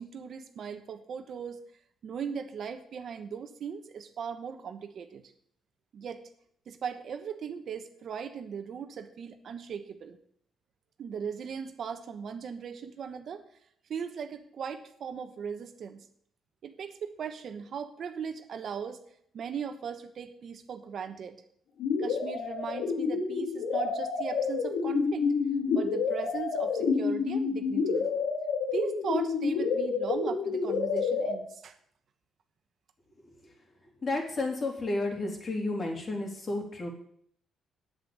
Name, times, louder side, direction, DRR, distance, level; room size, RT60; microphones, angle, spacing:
voice 1, 0.0-1.6 2.0-5.2 5.9-6.2 6.7-10.2 11.0-13.4 13.9-16.1 16.6-19.0 19.3-21.4 22.0-25.3 25.7-28.1 28.7-31.8, right 7 dB, 60° right, 8 dB, 1.1 m, -38 dB
sound 1, 21.8-31.3, left 5 dB, 80° left, 2.2 m, -29 dB
voice 2, 34.0-36.9, left 2 dB, 40° left, 1 dB, 3.3 m, -31 dB
8.0 x 7.8 x 8.8 m, 0.67 s
cardioid pair, 90°, 0 cm